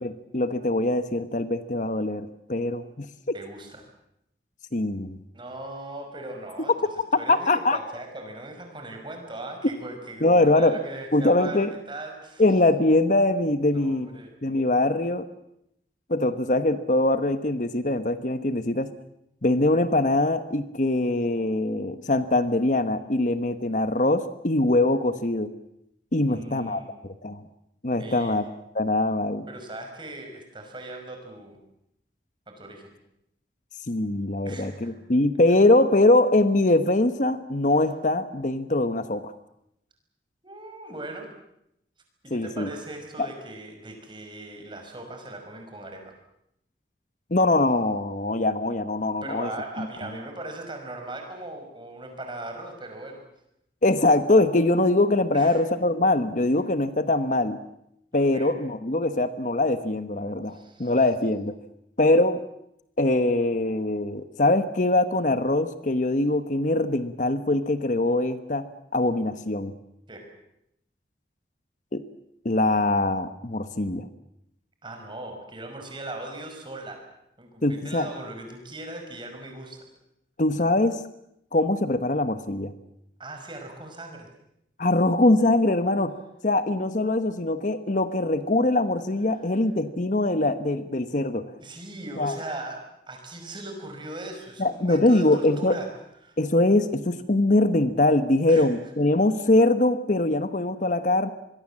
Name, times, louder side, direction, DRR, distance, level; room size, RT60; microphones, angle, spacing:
voice 1, 0.0-3.1 4.7-5.2 7.3-7.8 10.2-10.8 11.1-11.7 12.4-14.1 14.4-15.3 16.1-18.9 19.4-25.5 26.1-27.4 27.8-28.4 28.7-29.5 33.9-39.3 42.3-42.7 43.2-43.3 47.3-49.5 49.8-49.9 53.8-57.6 58.1-61.5 62.0-62.4 63.0-68.6 68.9-69.7 71.9-72.0 72.4-74.1 77.6-78.1 80.4-81.0 81.5-82.7 84.8-86.1 86.4-91.5 92.2-92.4 94.6-95.7 96.4-101.3, left 2 dB, 45° left, 11 dB, 1.1 m, -22 dB
voice 2, 3.3-3.9 5.3-6.7 7.2-12.4 13.6-14.3 26.3-26.9 28.0-28.4 29.5-31.6 32.5-32.9 34.4-35.0 40.4-41.3 42.2-46.1 49.2-53.2 55.3-55.6 58.1-58.6 60.5-60.9 70.1-70.3 74.8-77.0 77.4-79.8 83.2-84.3 91.6-95.9 96.2-96.4 98.5-98.7, right 1 dB, 30° right, 4 dB, 5.5 m, -39 dB
25.5 x 22.0 x 7.5 m, 0.78 s
head